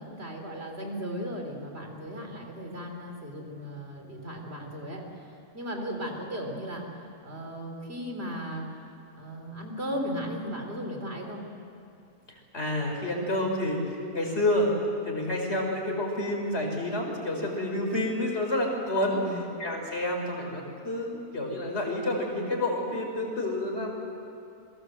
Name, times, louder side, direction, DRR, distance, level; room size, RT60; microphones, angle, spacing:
voice 1, 0.0-8.9 9.1-11.4 19.1-19.5, equal, 40° right, 2 dB, 4.1 m, -36 dB
voice 2, 12.3-14.7 15.0-19.2 19.6-23.9, left 1 dB, 40° left, 1 dB, 5.0 m, -29 dB
28.5 x 22.5 x 8.0 m, 2.6 s
omnidirectional pair, 1.6 m